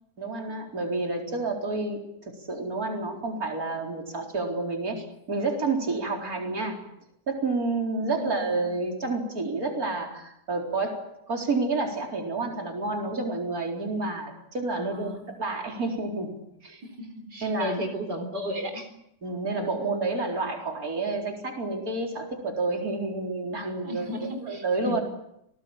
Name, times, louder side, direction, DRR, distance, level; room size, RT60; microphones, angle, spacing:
voice 1, 0.2-5.0 5.3-6.8 7.3-16.3 16.6-16.8 17.4-17.8 19.2-25.0, right 3 dB, 60° right, 1 dB, 4.6 m, -29 dB
voice 2, 8.1-8.5 14.8-15.2 17.0-18.9 23.8-25.0, equal, 90° right, 5 dB, 4.6 m, -35 dB
28.0 x 19.0 x 8.9 m, 0.79 s
omnidirectional pair, 1.8 m